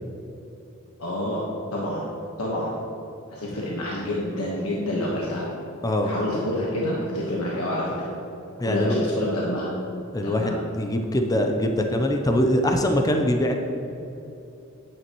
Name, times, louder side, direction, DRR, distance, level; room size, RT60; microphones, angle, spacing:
voice 1, 1.0-1.5 1.7-2.0 2.4-2.7 3.3-5.4 6.0-8.1 8.7-9.7 10.2-10.5, left 1 dB, 80° left, -4 dB, 1.3 m, -27 dB
voice 2, 5.8-6.1 8.6-9.0 10.1-13.6, left 1 dB, 15° left, 3 dB, 0.5 m, -23 dB
9.7 x 8.8 x 3.0 m, 2.9 s
head